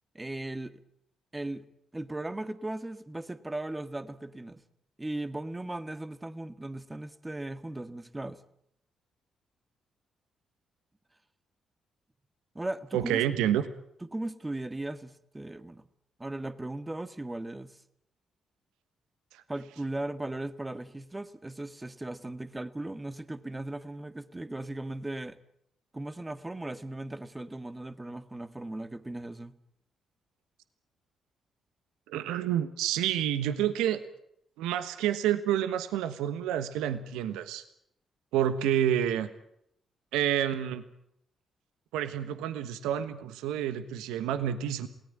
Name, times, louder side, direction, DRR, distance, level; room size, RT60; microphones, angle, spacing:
voice 1, 0.2-0.8 1.3-1.6 1.9-4.6 5.0-8.4 12.6-13.2 14.1-15.8 16.2-17.8 19.5-25.4 25.9-29.5, right 2 dB, 20° right, 11 dB, 1.8 m, -37 dB
voice 2, 12.9-13.6 19.3-19.4 32.1-34.0 34.6-37.6 38.3-39.3 40.1-40.8 41.9-44.9, right 10 dB, 75° right, 11 dB, 1.3 m, -29 dB
27.5 x 18.5 x 8.9 m, 0.75 s
hypercardioid pair, 45°, 0 cm